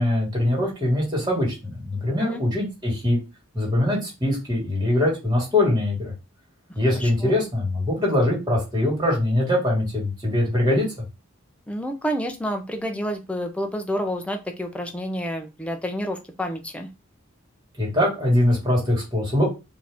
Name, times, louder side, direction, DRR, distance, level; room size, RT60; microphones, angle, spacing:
voice 1, 0.0-3.2 3.5-6.1 6.7-10.9 17.8-19.4, left 1 dB, 20° right, -4 dB, 2.1 m, -22 dB
voice 2, 6.9-7.4 11.7-16.9, equal, 5° left, 4 dB, 0.5 m, -29 dB
4.7 x 2.7 x 3.4 m, 0.27 s
head